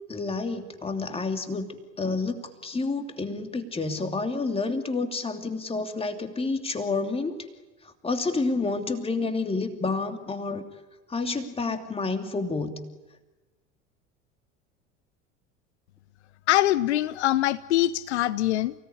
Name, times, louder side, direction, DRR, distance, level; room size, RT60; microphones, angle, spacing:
voice 1, 0.1-7.5 7.8-10.6 11.1-12.8, left 3 dB, 15° left, 6 dB, 2.9 m, -29 dB
voice 2, 16.5-18.7, left 14 dB, 65° left, 18 dB, 0.8 m, -23 dB
29.5 x 18.0 x 9.9 m, 1.2 s
figure-of-eight pair, 70°, 37 cm